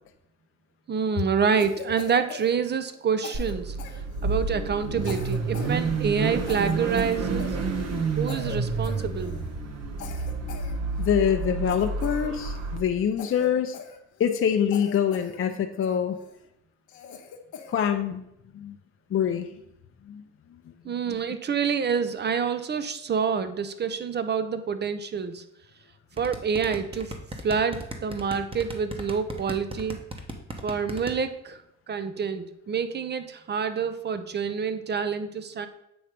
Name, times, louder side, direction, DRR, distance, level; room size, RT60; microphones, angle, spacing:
voice 1, 0.9-3.8 4.2-7.6 8.2-9.3 20.8-25.4 26.2-27.1 27.4-30.0 30.6-31.6 31.9-35.7, right 6 dB, 35° right, 11 dB, 0.6 m, -27 dB
Cough, 1.6-3.0 3.2-4.5 5.0-5.8 6.0-6.2 6.5-8.0 8.3-8.6 8.8-9.5 10.0-11.2 11.7-12.7 13.2-14.4 14.7-15.4 15.8-16.4 16.9-17.8, left 7 dB, 75° left, 0.9 m, -43 dB
Car / Idling / Accelerating revving vroom, 3.3-12.8, right 4 dB, 55° right, 1.2 m, -29 dB
voice 2, 11.0-13.8 14.2-16.2 17.7-18.2 18.5-18.8 19.1-19.5 20.1-20.2 21.1-21.2, left 8 dB, 45° left, 5 dB, 0.6 m, -25 dB
sound 1, 26.2-31.1, right 1 dB, 20° right, 1.0 m, -36 dB
7.9 x 3.2 x 5.1 m, 0.80 s
cardioid pair, 90°, 30 cm